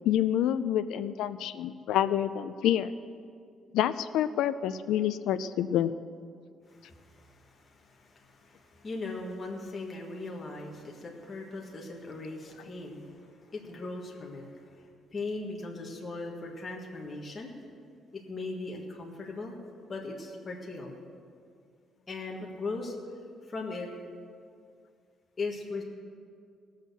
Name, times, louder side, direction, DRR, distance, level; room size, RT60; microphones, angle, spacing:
voice 1, 0.0-2.9 3.7-5.9, left 11 dB, 90° left, 12 dB, 0.4 m, -27 dB
voice 2, 6.7-14.8 15.1-17.5 18.1-19.5 19.9-20.9 22.1-22.9 23.5-23.9 25.4-25.8, left 3 dB, 25° left, -1 dB, 1.5 m, -39 dB
17.5 x 6.5 x 6.7 m, 2.2 s
cardioid pair, 155°, 0 cm